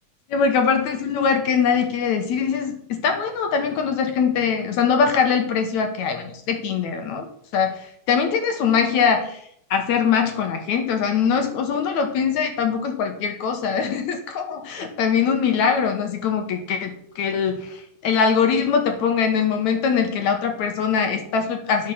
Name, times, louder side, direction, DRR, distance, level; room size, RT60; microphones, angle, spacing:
voice 1, 0.3-7.3 7.5-9.4 9.7-21.9, left 6 dB, 65° left, 4 dB, 2.3 m, -22 dB
12.0 x 6.7 x 5.7 m, 0.69 s
omnidirectional pair, 3.8 m